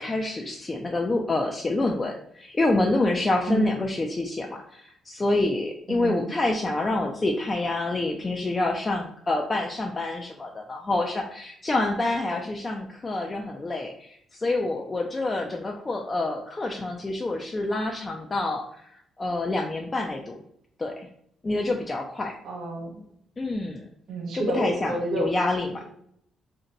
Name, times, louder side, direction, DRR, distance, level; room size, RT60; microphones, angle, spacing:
voice 1, 0.0-20.4 20.8-21.1 21.4-22.3 23.4-23.9 24.3-25.8, left 2 dB, 25° left, 1 dB, 0.4 m, -27 dB
voice 2, 5.9-6.3 22.4-23.0 24.1-25.3, right 2 dB, 70° right, 1 dB, 0.6 m, -29 dB
2.6 x 2.1 x 3.9 m, 0.70 s
cardioid pair, 90°, 0 cm